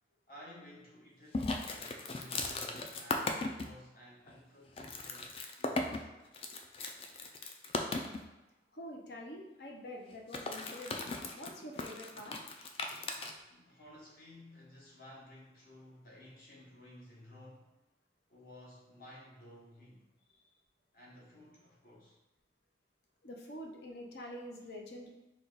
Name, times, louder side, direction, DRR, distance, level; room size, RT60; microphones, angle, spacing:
voice 1, 0.3-6.1 13.5-17.7 18.3-20.1 20.9-22.2, left 1 dB, 50° left, -5 dB, 1.3 m, -55 dB
sound 1, 1.3-3.7 4.3-4.4 4.7-8.2 10.1-13.3, left 3 dB, 30° left, 0.3 m, -37 dB
voice 2, 8.7-12.4 23.2-25.1, left 1 dB, 70° left, 0 dB, 0.7 m, -46 dB
4.3 x 2.3 x 3.9 m, 1.0 s
head